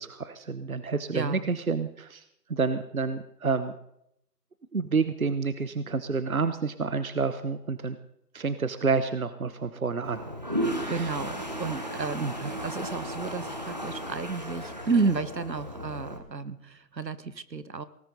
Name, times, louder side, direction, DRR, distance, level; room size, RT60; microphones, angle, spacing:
voice 1, 0.0-2.2 2.5-3.7 4.7-8.0 8.3-10.2 10.8-11.1 12.2-12.5, right 4 dB, 55° right, 12 dB, 1.0 m, -29 dB
voice 2, 1.1-1.5 10.6-17.8, right 4 dB, 80° right, 15 dB, 1.4 m, -32 dB
Toilet flush, 10.0-16.2, equal, 25° right, 1.2 m, -35 dB
18.5 x 14.5 x 4.0 m, 0.76 s
figure-of-eight pair, 175°, 50 cm